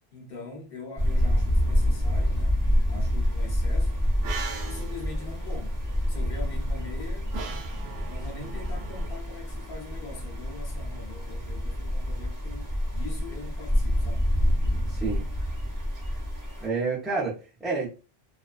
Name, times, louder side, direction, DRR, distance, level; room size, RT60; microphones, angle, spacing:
voice 1, 0.1-2.6 2.9-4.0 4.7-5.8 6.1-7.4 8.1-14.3, left 3 dB, 65° left, 1.0 m, -42 dB
sound 1, 1.0-16.7, equal, 20° right, 0.8 m, -27 dB
sound 2, 4.0-9.1, right 5 dB, 80° right, 0.8 m, -41 dB
voice 2, 14.9-15.2 16.6-17.9, right 4 dB, ahead, 0.5 m, -29 dB
2.4 x 2.2 x 2.4 m
omnidirectional pair, 1.0 m